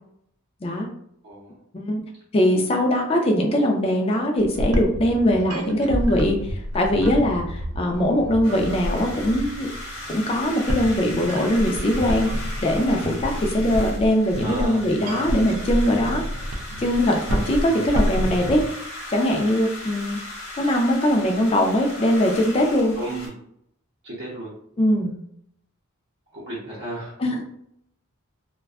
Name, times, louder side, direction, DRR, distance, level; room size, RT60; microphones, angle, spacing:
voice 1, 2.3-9.7 10.1-16.2 16.8-18.8 19.1-20.2 20.6-22.9 24.8-25.2 27.2-27.5, equal, 25° left, 2 dB, 0.4 m, -21 dB
sound 1, 4.4-18.7, equal, 90° right, 0.4 m, -29 dB
sound 2, 8.4-23.3, left 1 dB, 65° left, 0.9 m, -37 dB
voice 2, 14.4-14.8 23.0-23.3 24.0-24.5 26.3-27.1, right 1 dB, 50° right, -8 dB, 0.7 m, -33 dB
2.4 x 2.2 x 2.3 m, 0.72 s
head